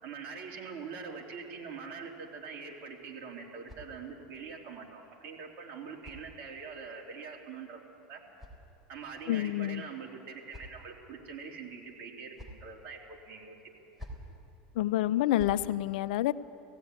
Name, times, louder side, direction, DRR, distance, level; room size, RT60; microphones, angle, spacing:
voice 1, 0.0-7.8 8.1-8.2 8.9-13.6, right 5 dB, 50° right, -1 dB, 3.4 m, -44 dB
sound 1, 3.3-4.4 5.4-6.9 7.9-9.2 10.0-11.1 12.0-12.7 13.7-14.4 15.1-15.7, equal, 5° right, 3.5 m, -52 dB
voice 2, 9.3-9.8 14.7-16.3, left 14 dB, 75° left, 15 dB, 0.6 m, -28 dB
17.0 x 16.0 x 9.5 m, 2.7 s
supercardioid pair, 125°, 5 cm